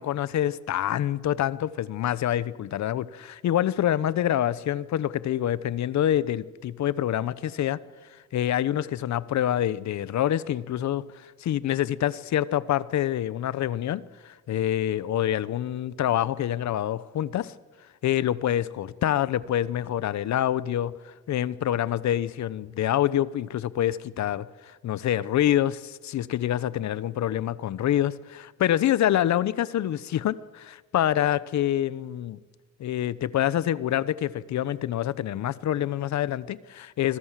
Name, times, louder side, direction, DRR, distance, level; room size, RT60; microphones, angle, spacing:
voice 1, 0.0-7.8 8.3-17.5 18.0-32.4 32.8-37.2, left 11 dB, 65° left, 18 dB, 0.9 m, -26 dB
25.5 x 21.0 x 7.5 m, 1.3 s
cardioid pair, 90°, 30 cm